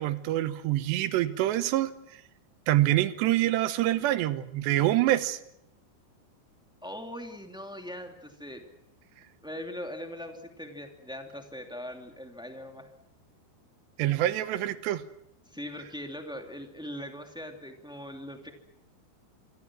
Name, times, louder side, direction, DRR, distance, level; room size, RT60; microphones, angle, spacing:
voice 1, 0.0-1.9 2.7-5.4 14.0-15.0, right 14 dB, 75° right, 13 dB, 3.2 m, -26 dB
voice 2, 6.8-8.6 9.4-12.9 15.4-18.5, equal, ahead, 4 dB, 1.3 m, -41 dB
27.0 x 24.5 x 6.2 m, 0.80 s
omnidirectional pair, 5.1 m